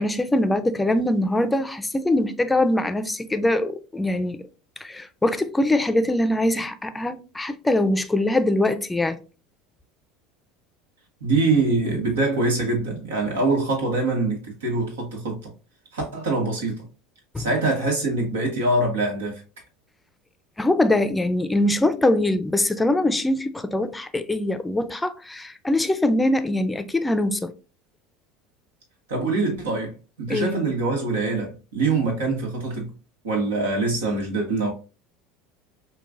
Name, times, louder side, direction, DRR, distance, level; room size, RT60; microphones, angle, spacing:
voice 1, 0.0-4.4 4.8-9.2 17.3-17.5 20.6-27.5 30.3-30.6, left 1 dB, 10° left, 0.5 m, -23 dB
voice 2, 11.2-15.5 15.9-16.8 17.4-19.4 29.1-32.9 33.2-34.7, right 3 dB, 85° right, 1.3 m, -24 dB
5.6 x 2.3 x 2.5 m
hypercardioid pair, 85°, 0 cm